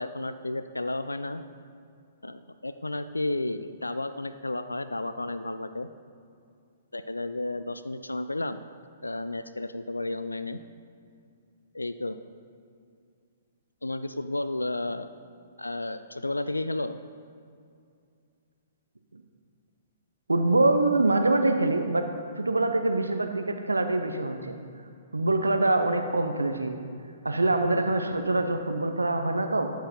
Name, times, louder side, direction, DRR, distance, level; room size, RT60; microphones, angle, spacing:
voice 1, 0.0-1.4 2.2-5.9 6.9-8.6 9.0-10.6 11.7-12.2 13.8-15.1 15.6-17.0, left 2 dB, 85° left, 11 dB, 0.3 m, -32 dB
voice 2, 20.3-22.0 22.4-24.6 25.1-26.8 27.2-29.7, right 2 dB, 80° right, 6 dB, 0.6 m, -24 dB
12.5 x 4.7 x 5.2 m, 2.4 s
figure-of-eight pair, 115°, 0 cm